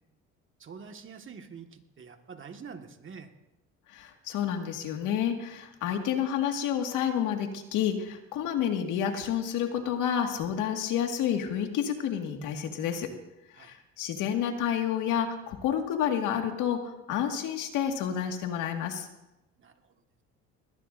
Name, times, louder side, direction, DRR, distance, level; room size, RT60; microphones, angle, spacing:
voice 1, 0.6-3.3 13.6-13.8 19.6-20.0, right 6 dB, 40° right, 5 dB, 1.8 m, -46 dB
voice 2, 3.9-13.1 13.6-19.1, left 9 dB, 75° left, 4 dB, 2.0 m, -29 dB
20.5 x 17.5 x 2.7 m, 0.94 s
supercardioid pair, 90°, 31 cm